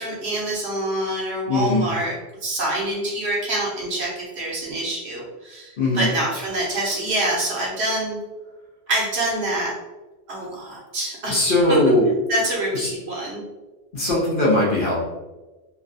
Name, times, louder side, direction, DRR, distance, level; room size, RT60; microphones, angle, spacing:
voice 1, 0.0-8.2 8.9-9.7 10.3-11.4 11.7-11.8 12.3-13.4, right 1 dB, 65° right, -4 dB, 1.1 m, -26 dB
voice 2, 1.5-1.9 5.8-6.1 10.4-10.5 11.3-12.1 12.8-12.9 13.9-15.0, left 1 dB, 50° left, -5 dB, 0.9 m, -19 dB
3.3 x 2.3 x 2.5 m, 1.1 s
omnidirectional pair, 1.2 m